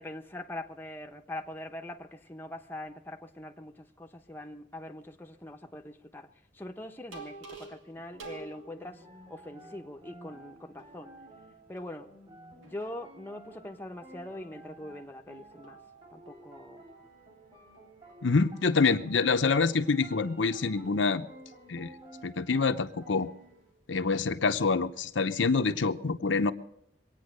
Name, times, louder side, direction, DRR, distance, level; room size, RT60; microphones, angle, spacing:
voice 1, 0.0-6.3 6.5-9.0 9.3-11.1 11.7-12.1 12.6-15.8 16.1-16.8, left 1 dB, 10° left, 0.8 m, -42 dB
sound 1, 7.1-9.0 9.6-10.4 10.8-11.4 11.8-13.0 14.3-15.1 15.6-21.9, right 3 dB, 90° right, 2.4 m, -52 dB
sound 2, 8.1-23.7, right 1 dB, 30° right, 3.2 m, -53 dB
voice 2, 18.2-21.3 21.7-21.9 22.2-23.3 23.9-26.5, left 4 dB, 75° left, 0.8 m, -26 dB
22.5 x 9.1 x 6.4 m
head